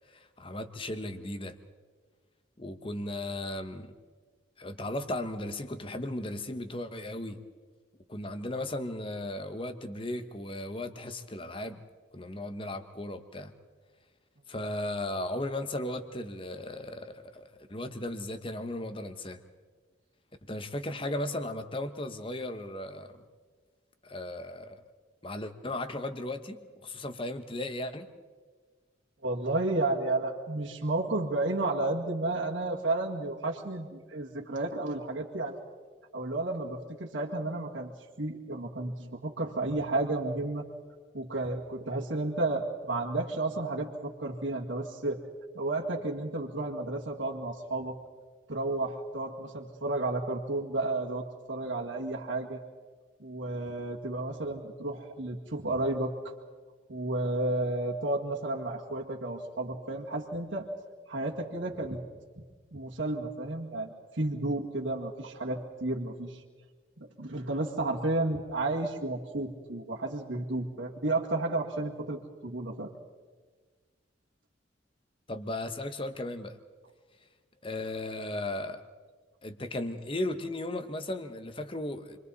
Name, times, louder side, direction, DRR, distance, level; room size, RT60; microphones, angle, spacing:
voice 1, 0.1-1.6 2.6-3.9 4.6-7.4 8.1-11.8 12.1-13.5 14.5-19.4 20.4-23.2 24.0-24.8 25.2-28.1 75.3-76.6 77.6-78.8 79.4-82.2, left 1 dB, 30° left, 9 dB, 1.1 m, -36 dB
voice 2, 29.2-35.6 36.1-37.9 38.2-40.7 41.1-45.2 45.5-48.0 48.5-52.6 53.2-56.1 56.9-60.7 61.1-62.0 62.7-66.4 67.2-72.9, right 2 dB, 80° right, -3 dB, 2.0 m, -32 dB
29.0 x 23.5 x 4.1 m, 1.5 s
head